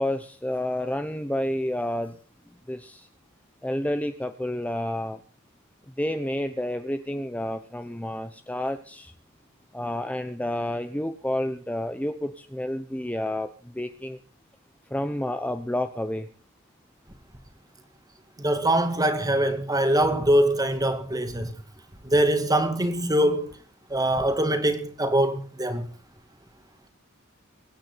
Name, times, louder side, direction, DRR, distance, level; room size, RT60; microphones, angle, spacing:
voice 1, 0.0-2.2 2.7-3.1 3.6-5.2 6.0-9.1 9.7-14.2 14.9-16.3, left 1 dB, 5° left, 0.9 m, -30 dB
voice 2, 18.4-21.5 22.0-23.5 23.9-25.9, right 1 dB, 20° right, 2.2 m, -23 dB
24.0 x 9.8 x 4.1 m
head